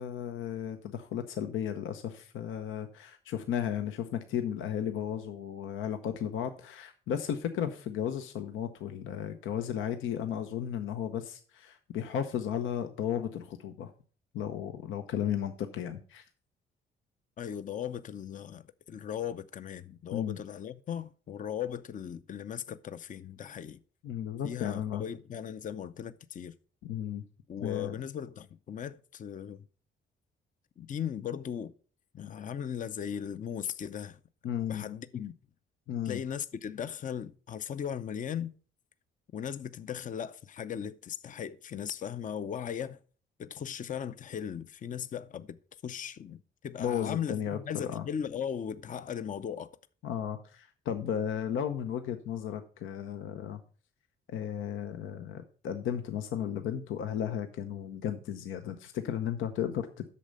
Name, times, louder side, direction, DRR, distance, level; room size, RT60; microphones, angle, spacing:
voice 1, 0.0-13.9 14.3-16.3 20.1-20.4 24.0-25.1 26.8-27.2 27.6-28.0 34.4-34.8 35.9-36.2 46.8-48.0 50.0-53.6 54.3-60.1, left 9 dB, 85° left, 0.8 m, -34 dB
voice 2, 17.4-23.8 24.4-26.5 27.5-29.6 30.8-31.7 32.1-34.2 34.7-35.3 36.0-38.5 39.3-43.0 43.4-49.7, left 8 dB, 40° left, 0.6 m, -38 dB
8.5 x 6.6 x 5.3 m
cardioid pair, 90°, 20 cm